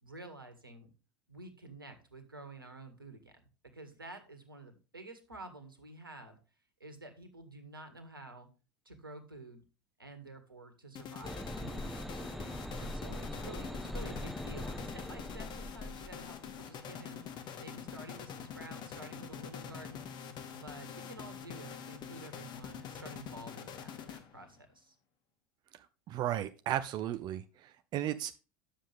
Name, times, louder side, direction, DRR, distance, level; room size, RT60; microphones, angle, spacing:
voice 1, 0.0-0.9 1.3-6.4 6.8-8.5 8.8-9.6 10.0-20.1 20.5-24.9, right 2 dB, 90° right, 8 dB, 1.8 m, -50 dB
sound 1, 11.0-24.6, left 7 dB, 40° left, 1.6 m, -45 dB
sound 2, 11.2-16.6, equal, ahead, 0.4 m, -42 dB
voice 2, 26.1-28.4, right 12 dB, 40° right, 11 dB, 0.6 m, -35 dB
10.0 x 7.5 x 3.5 m, 0.33 s
figure-of-eight pair, 75°, 11 cm